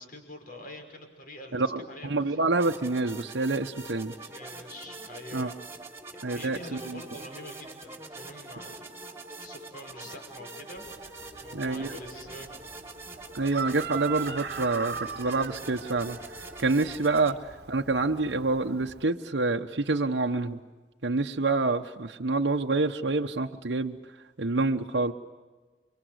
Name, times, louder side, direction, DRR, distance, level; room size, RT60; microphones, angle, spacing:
voice 1, 0.0-1.6 1.9-2.4 4.2-5.5 6.3-8.9 9.4-10.8 11.3-12.5 17.3-17.4 21.6-21.8, left 1 dB, 55° left, 4 dB, 5.8 m, -45 dB
voice 2, 1.5-4.1 5.3-5.5 6.2-6.6 6.9-7.0 11.5-12.0 13.3-16.2 16.6-20.6 21.0-24.0 24.4-25.1, right 3 dB, 85° right, 3 dB, 1.0 m, -27 dB
sound 1, 2.5-17.3, right 3 dB, 15° right, 3.4 m, -44 dB
Chicken rooster, 10.8-19.1, right 6 dB, 65° right, 1.3 m, -40 dB
30.0 x 24.5 x 8.1 m, 1.3 s
head